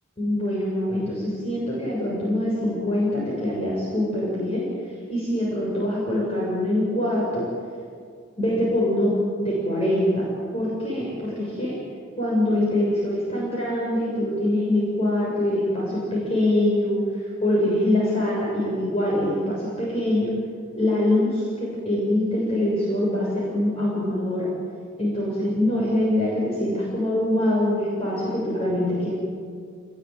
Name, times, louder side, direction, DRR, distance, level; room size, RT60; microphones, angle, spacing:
voice 1, 0.2-4.7 5.1-7.5 8.4-9.1 9.4-10.3 10.5-11.8 12.2-20.3 20.8-24.5 25.0-29.1, left 1 dB, 30° left, -5 dB, 6.9 m, -24 dB
27.5 x 20.5 x 9.5 m, 2.2 s
head